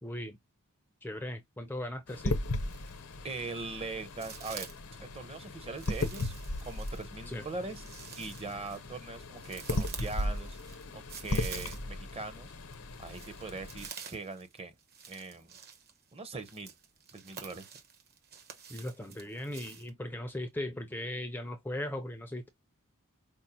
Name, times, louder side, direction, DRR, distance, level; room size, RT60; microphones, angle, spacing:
voice 1, 0.0-0.4 1.0-2.4 7.3-7.5 18.7-22.5, left 1 dB, 10° left, 0.5 m, -38 dB
Droplets underwater, 2.1-13.9, left 2 dB, 85° left, 0.8 m, -37 dB
sound 1, 2.3-3.1 3.5-4.9 5.8-12.1 12.4-19.9, right 7 dB, 45° right, 1.1 m, -48 dB
voice 2, 3.2-4.7 5.0-6.3 6.6-7.8 8.2-10.6 10.9-12.5 13.0-14.7 15.1-15.6 16.1-16.7 17.1-17.7, right 3 dB, 25° right, 0.8 m, -41 dB
5.2 x 2.1 x 2.9 m
head